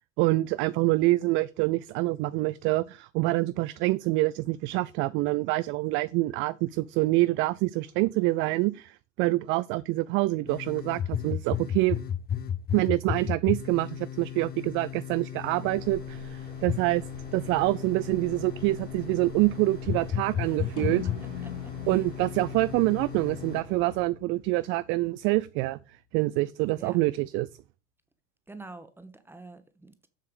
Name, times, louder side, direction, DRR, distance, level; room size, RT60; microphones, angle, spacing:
voice 1, 0.2-12.0 12.7-17.0 17.3-21.0 21.9-25.8 26.1-27.5, right 20 dB, 35° right, 0.4 m, -26 dB
sound 1, 10.5-23.6, left 9 dB, 25° left, 0.7 m, -34 dB
sound 2, 15.6-24.0, right 1 dB, 80° right, 2.3 m, -46 dB
voice 2, 20.4-20.9 21.2-22.0 26.8-27.0 28.5-30.1, right 3 dB, 5° right, 1.2 m, -47 dB
sound 3, 20.8-25.2, left 12 dB, 65° left, 0.7 m, -42 dB
7.4 x 7.4 x 5.1 m
figure-of-eight pair, 70°, 37 cm